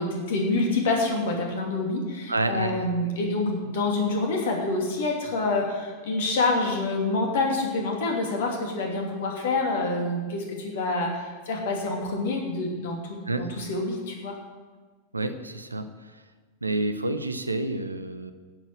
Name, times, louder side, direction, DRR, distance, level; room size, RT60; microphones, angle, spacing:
voice 1, 0.0-14.3, left 2 dB, 55° left, 1 dB, 2.7 m, -27 dB
voice 2, 2.3-2.7 13.3-13.5 15.1-15.9 16.6-18.3, right 2 dB, 80° right, 10 dB, 0.8 m, -28 dB
11.5 x 8.0 x 7.7 m, 1.4 s
figure-of-eight pair, 90°, 0 cm